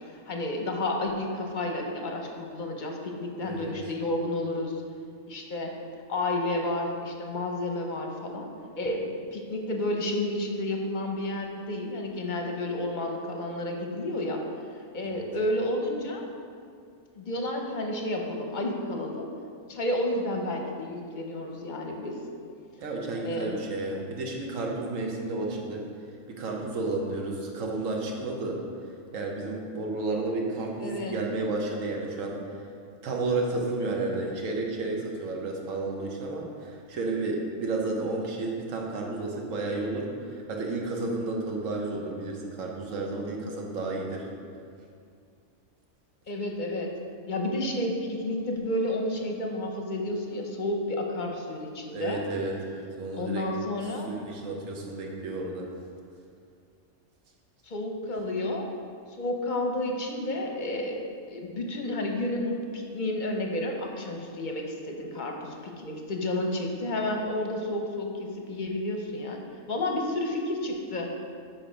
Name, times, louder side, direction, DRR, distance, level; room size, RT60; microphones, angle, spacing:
voice 1, 0.1-4.8 5.3-5.7 6.1-8.5 8.8-14.4 14.9-16.2 17.2-19.3 19.7-22.2 23.2-23.7 30.8-31.2 46.3-46.9 47.3-52.2 53.1-54.1 57.6-58.7 59.2-61.0 61.3-69.4 69.7-71.1, left 1 dB, 45° left, 2 dB, 0.7 m, -31 dB
voice 2, 3.4-3.7 15.0-15.3 22.8-25.8 26.3-28.6 29.1-32.4 33.0-44.3 51.9-53.4 54.1-55.7, right 2 dB, 80° right, 0 dB, 1.3 m, -32 dB
6.6 x 4.5 x 5.0 m, 2.3 s
omnidirectional pair, 1.3 m